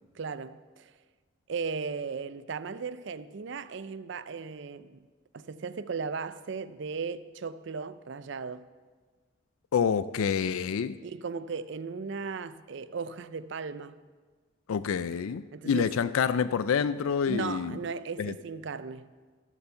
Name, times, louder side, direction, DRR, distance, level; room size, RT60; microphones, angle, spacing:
voice 1, 0.2-0.9 1.5-5.0 5.3-8.7 11.0-14.0 15.5-16.0 17.3-19.1, right 5 dB, 55° right, 0.4 m, -36 dB
voice 2, 9.7-11.0 14.7-17.8 18.2-18.4, left 6 dB, 85° left, 0.4 m, -27 dB
14.0 x 6.9 x 6.9 m
head